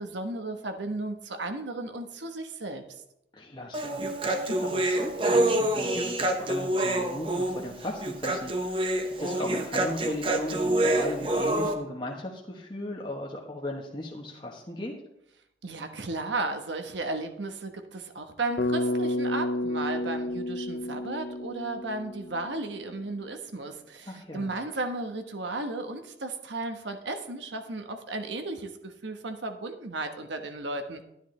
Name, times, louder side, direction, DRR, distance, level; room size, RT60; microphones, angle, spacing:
voice 1, 0.0-2.8 15.6-31.0, right 2 dB, 85° right, 6 dB, 1.2 m, -34 dB
voice 2, 3.3-14.9 24.1-24.6, left 1 dB, 25° left, -1 dB, 1.1 m, -37 dB
Human voice, 3.7-11.7, right 1 dB, 30° right, 0.8 m, -27 dB
Bass guitar, 18.6-22.7, left 1 dB, 50° left, 0.6 m, -31 dB
12.0 x 9.9 x 3.2 m, 0.81 s
head